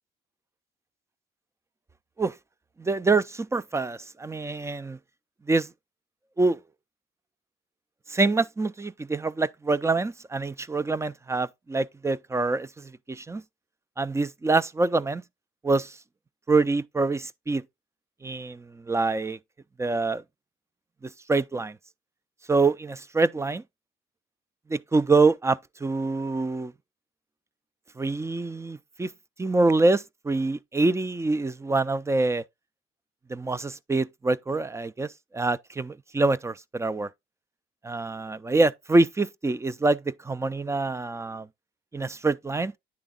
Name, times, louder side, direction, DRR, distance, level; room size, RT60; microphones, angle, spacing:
voice 1, 2.8-5.0 5.5-5.7 6.4-6.6 8.1-13.4 14.0-15.2 15.6-15.9 16.5-17.6 18.2-19.4 19.8-20.2 21.3-21.8 22.5-23.6 24.7-26.7 28.0-29.1 29.4-32.4 33.3-37.1 37.8-41.5 41.9-42.7, right 3 dB, 15° right, 0.3 m, -25 dB
9.6 x 3.5 x 3.8 m
cardioid pair, 90°, 20 cm